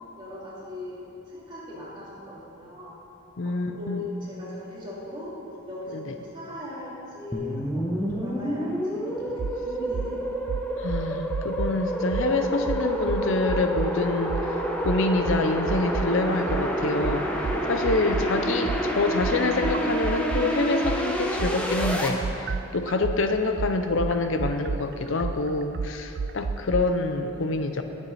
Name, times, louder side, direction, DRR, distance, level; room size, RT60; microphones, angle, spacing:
voice 1, 0.2-1.0 1.3-3.0 3.4-5.4 5.7-10.4, left 2 dB, 20° right, -7 dB, 2.8 m, -39 dB
voice 2, 3.4-4.0 5.9-6.0 10.8-27.8, left 3 dB, 60° left, 7 dB, 0.6 m, -26 dB
sound 1, 7.3-22.1, equal, 5° left, 0.8 m, -28 dB
sound 2, 9.4-9.6 9.9-10.1 10.5-11.8 12.1-12.3 12.7-13.9 14.3-14.5 14.8-16.1 16.5-20.5 20.8-26.8, right 5 dB, 45° right, 0.3 m, -31 dB
20.0 x 7.1 x 4.2 m, 2.9 s
head